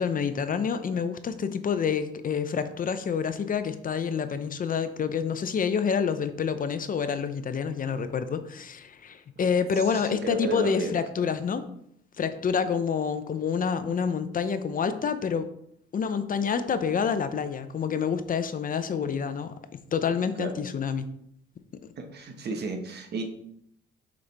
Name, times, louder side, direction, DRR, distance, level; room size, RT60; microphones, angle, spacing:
voice 1, 0.0-11.6 12.2-15.5 15.9-21.1 21.8-21.9, left 6 dB, 45° left, 11 dB, 0.6 m, -28 dB
voice 2, 9.8-11.3 20.4-20.6 22.0-23.2, right 3 dB, 55° right, 4 dB, 1.3 m, -33 dB
6.8 x 5.2 x 3.4 m, 0.70 s
cardioid pair, 90°, 20 cm